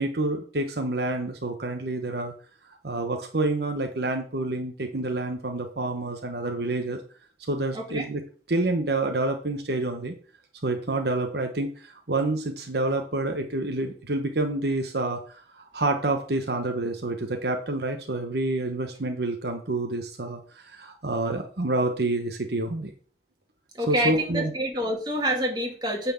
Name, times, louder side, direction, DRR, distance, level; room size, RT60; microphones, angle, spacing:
voice 1, 0.0-2.3 2.8-7.0 7.4-8.2 8.5-10.1 10.6-22.9 23.9-24.5, right 2 dB, 65° right, 4 dB, 1.1 m, -28 dB
voice 2, 7.7-8.1 23.7-26.1, equal, 25° right, 0 dB, 2.3 m, -27 dB
9.1 x 4.4 x 7.1 m, 0.43 s
head